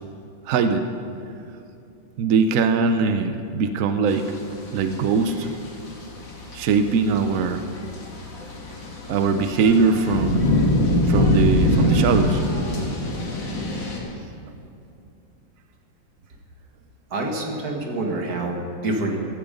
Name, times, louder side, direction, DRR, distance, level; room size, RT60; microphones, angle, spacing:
voice 1, 0.5-0.9 2.2-4.4 4.7-5.5 6.5-7.6 9.1-10.5 11.0-12.4 14.0-14.1, right 5 dB, 70° right, 8 dB, 0.8 m, -21 dB
sound 1, 4.1-14.0, left 1 dB, 65° left, 2.8 m, -24 dB
voice 2, 17.1-19.2, right 2 dB, 50° right, 1 dB, 2.1 m, -27 dB
16.0 x 13.0 x 5.3 m, 2.6 s
omnidirectional pair, 2.2 m